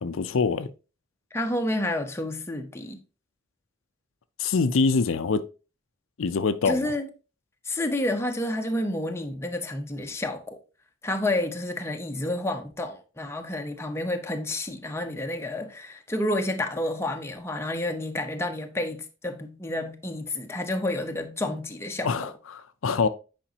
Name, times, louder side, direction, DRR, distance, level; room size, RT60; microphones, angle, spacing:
voice 1, 0.0-0.7 4.4-5.4 6.2-6.9 22.0-23.1, left 4 dB, 80° left, 0.5 m, -24 dB
voice 2, 1.3-3.0 6.6-7.1 7.7-10.6 11.0-22.3, left 1 dB, 15° left, 0.7 m, -30 dB
8.8 x 5.1 x 2.8 m
head